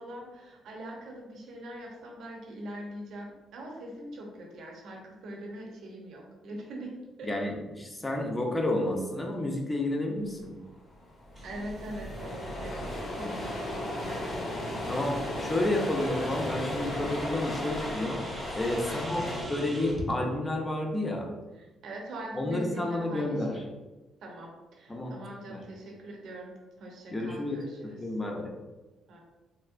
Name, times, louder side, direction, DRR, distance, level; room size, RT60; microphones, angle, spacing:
voice 1, 0.0-6.9 7.2-7.5 11.4-12.8 13.1-14.3 18.8-19.4 21.6-23.6 24.2-28.0 29.1-29.2, right 1 dB, 75° right, -1 dB, 0.7 m, -42 dB
voice 2, 7.2-10.5 14.9-18.2 18.5-19.2 19.5-21.3 22.3-23.6 24.9-25.1 25.5-25.6 27.1-28.5, left 1 dB, 20° left, 1 dB, 0.6 m, -30 dB
sound 1, 10.7-10.8 10.9-19.4, left 1 dB, 60° left, 0.9 m, -35 dB
sound 2, 11.4-20.1, right 1 dB, 30° right, 0.6 m, -45 dB
3.2 x 2.7 x 2.5 m, 1.1 s
cardioid pair, 90°, 0 cm